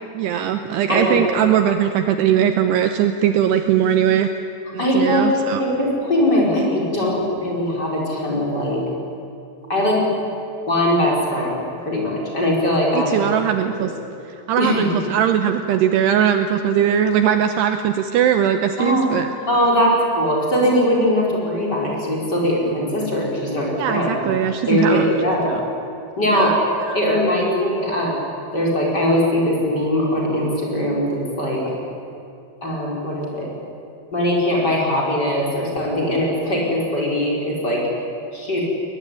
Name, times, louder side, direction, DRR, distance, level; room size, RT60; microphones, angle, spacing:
voice 1, 0.1-4.3 4.7-5.6 12.9-13.9 14.3-19.3 23.8-25.1 25.5-25.6 26.3-26.6 26.9-27.0, right 9 dB, 75° right, 8 dB, 2.7 m, -20 dB
voice 2, 4.8-8.8 9.7-10.1 10.7-13.2 13.8-13.9 14.6-14.9 18.8-19.1 19.5-24.3 24.7-25.6 26.2-26.6 26.9-28.2 28.5-31.6 32.6-33.5 34.1-37.8 38.3-38.6, left 1 dB, 20° left, -3 dB, 4.9 m, -20 dB
23.0 x 20.5 x 10.0 m, 2.6 s
omnidirectional pair, 5.3 m